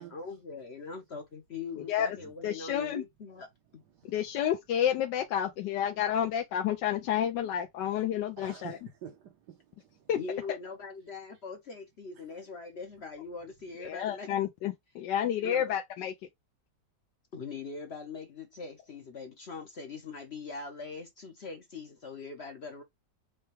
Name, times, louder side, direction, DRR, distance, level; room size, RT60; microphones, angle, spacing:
voice 1, 0.0-3.8 10.1-14.4 15.4-15.8 17.3-22.8, left 4 dB, 50° left, 0.8 m, -42 dB
voice 2, 2.4-3.0 4.1-8.8 10.1-10.2 13.8-16.1, left 10 dB, 80° left, 1.3 m, -30 dB
voice 3, 8.4-10.0, right 9 dB, 70° right, 1.4 m, -48 dB
5.6 x 2.3 x 3.1 m
omnidirectional pair, 1.9 m